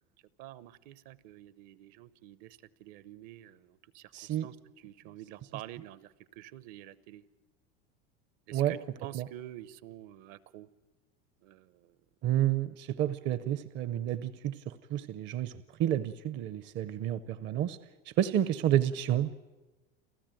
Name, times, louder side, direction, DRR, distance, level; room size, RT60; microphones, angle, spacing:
voice 1, 0.4-4.6 4.8-7.2 8.5-10.7 11.4-12.0, right 13 dB, 60° right, 17 dB, 0.9 m, -48 dB
voice 2, 4.1-4.5 8.5-8.8 9.1-9.3 12.2-17.8 18.2-19.3, right 11 dB, 40° right, 15 dB, 0.7 m, -30 dB
29.5 x 13.5 x 9.1 m, 1.2 s
supercardioid pair, 140°, 30 cm